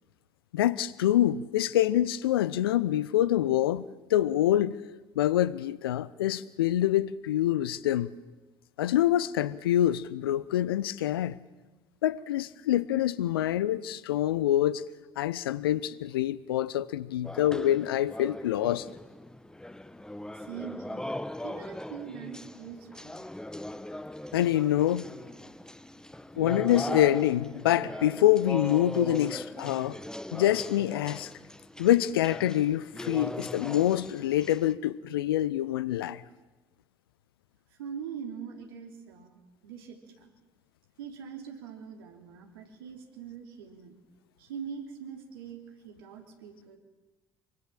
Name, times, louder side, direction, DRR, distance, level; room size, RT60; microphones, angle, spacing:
voice 1, 0.5-4.8 5.2-8.1 8.8-11.4 12.0-14.9 15.2-18.9 24.3-25.1 26.3-30.0 30.3-31.3 31.8-36.2, left 12 dB, 80° left, 0.7 m, -26 dB
sound 1, 17.2-34.7, left 1 dB, 5° left, 1.3 m, -40 dB
voice 2, 20.3-21.1 21.4-23.3 37.7-40.3 41.0-44.0 44.4-46.8, right 7 dB, 75° right, 3.2 m, -43 dB
24.5 x 23.5 x 7.5 m
figure-of-eight pair, 55°, 12 cm